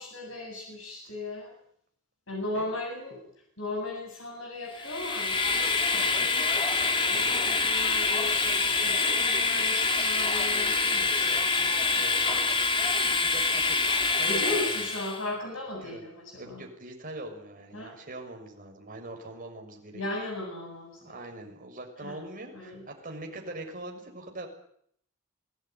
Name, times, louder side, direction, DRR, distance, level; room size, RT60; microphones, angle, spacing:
voice 1, 0.0-1.5 2.3-3.2 3.6-6.4 7.0-12.0 14.2-16.6 17.7-17.9 19.9-21.2 22.0-22.2 22.5-22.8, left 2 dB, 60° left, 0 dB, 7.9 m, -37 dB
Train, 4.8-15.2, left 4 dB, 25° left, 1.9 m, -26 dB
voice 2, 11.8-12.2 12.8-14.7 15.7-16.0 16.4-20.3 21.0-24.5, right 2 dB, 40° right, 2 dB, 6.4 m, -42 dB
24.5 x 18.0 x 9.6 m, 0.69 s
head